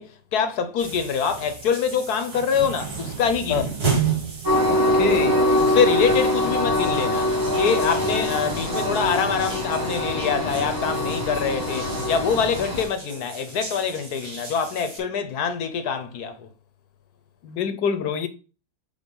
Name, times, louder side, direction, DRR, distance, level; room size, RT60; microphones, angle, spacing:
voice 1, 0.0-3.7 5.6-7.3 7.6-16.5, left 6 dB, 65° left, 1.3 m, -25 dB
sound 1, 0.8-15.0, right 5 dB, 60° right, 2.8 m, -34 dB
Train, 4.4-12.8, left 1 dB, 10° right, 2.0 m, -23 dB
voice 2, 4.7-5.4 17.4-18.3, left 7 dB, 80° left, 1.5 m, -25 dB
5.3 x 4.5 x 5.4 m
omnidirectional pair, 1.9 m